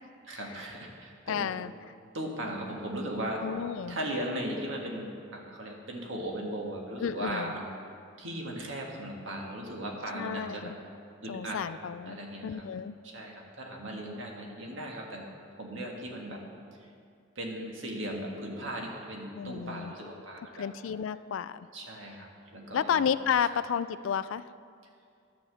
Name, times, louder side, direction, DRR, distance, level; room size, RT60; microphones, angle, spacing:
voice 1, 0.2-1.5 2.1-3.4 3.9-7.7 8.2-10.7 11.2-11.6 12.1-12.6 13.0-15.2 15.6-16.4 16.8-16.9 17.4-20.7 21.7-23.0, right 1 dB, 70° right, 0 dB, 1.7 m, -37 dB
voice 2, 1.3-1.7 3.4-4.0 7.0-7.5 10.1-10.7 11.3-12.9 19.3-19.9 20.6-21.7 22.7-24.5, left 7 dB, 75° left, 15 dB, 0.3 m, -31 dB
11.5 x 5.8 x 7.8 m, 2.4 s
head